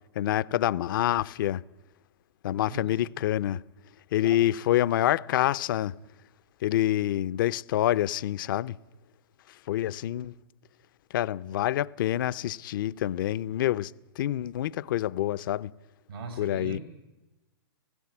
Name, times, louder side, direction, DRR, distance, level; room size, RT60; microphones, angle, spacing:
voice 1, 0.1-1.6 2.4-3.6 4.1-6.0 6.6-8.8 9.7-10.3 11.1-15.7 16.4-16.8, left 13 dB, 60° left, 0.7 m, -27 dB
voice 2, 16.1-16.8, right 3 dB, 80° right, 5.7 m, -39 dB
17.5 x 16.0 x 9.6 m
hypercardioid pair, 125°, 12 cm